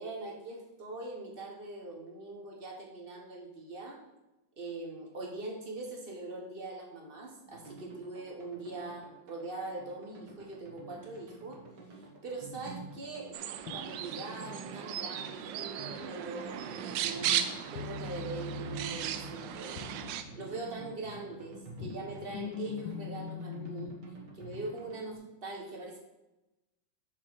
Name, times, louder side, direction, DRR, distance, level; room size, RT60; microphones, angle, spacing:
voice 1, 0.0-4.0 4.6-11.6 11.9-19.8 20.4-23.9 24.3-26.0, right 2 dB, 30° right, 0 dB, 1.3 m, -42 dB
sound 1, 7.4-25.1, right 3 dB, 60° right, 1.9 m, -50 dB
sound 2, 13.3-20.2, right 10 dB, 75° right, 1.2 m, -36 dB
sound 3, 13.7-14.3 17.7-20.8 21.3-24.0, left 6 dB, 75° left, 1.4 m, -42 dB
6.4 x 5.1 x 5.8 m, 1.0 s
omnidirectional pair, 2.2 m